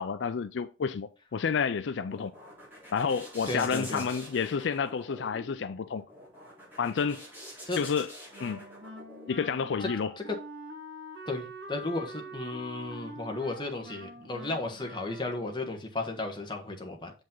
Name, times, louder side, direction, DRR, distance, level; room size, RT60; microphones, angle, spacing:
voice 1, 0.0-2.3 2.9-6.0 6.8-7.2 7.8-8.1 8.4-8.7 9.3-10.1, left 6 dB, 75° left, 0.4 m, -30 dB
sound 1, 2.0-9.5, equal, 10° right, 3.8 m, -47 dB
voice 2, 3.5-4.1 7.7-7.9 9.8-9.9 10.2-10.4 11.3-17.1, left 2 dB, 25° left, 1.4 m, -34 dB
Wind instrument woodwind instrument, 8.3-15.7, equal, 65° right, 1.7 m, -45 dB
7.2 x 5.3 x 3.8 m
head